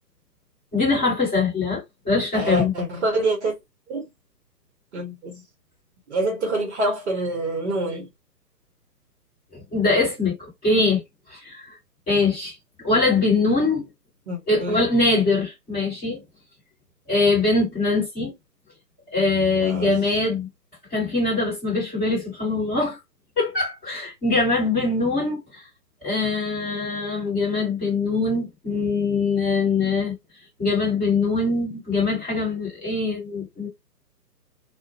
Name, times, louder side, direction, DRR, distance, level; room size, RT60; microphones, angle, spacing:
voice 1, 0.7-2.7 9.5-11.0 11.3-11.8 12.1-13.8 14.5-16.2 17.1-18.3 19.1-20.5 20.9-23.0 23.4-25.6 26.0-30.1 30.6-33.7, left 3 dB, 10° left, 1.3 m, -23 dB
voice 2, 2.3-3.5 3.9-4.0 4.9-5.4 6.1-8.1 14.3-14.8 19.6-20.0, right 2 dB, 45° right, 0.9 m, -26 dB
2.4 x 2.2 x 2.7 m
figure-of-eight pair, 140°, 49 cm